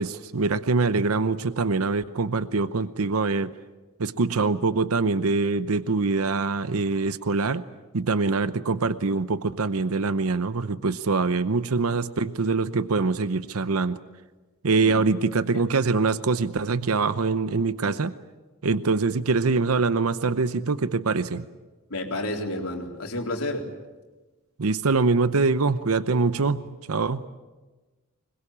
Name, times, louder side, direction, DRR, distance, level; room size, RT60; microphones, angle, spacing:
voice 1, 0.0-3.5 4.0-7.6 7.9-14.0 14.6-18.2 18.6-21.4 24.6-27.2, right 4 dB, 90° right, 13 dB, 0.8 m, -24 dB
voice 2, 21.9-23.7, left 1 dB, 80° left, 2 dB, 3.9 m, -30 dB
25.5 x 21.5 x 8.6 m, 1.2 s
head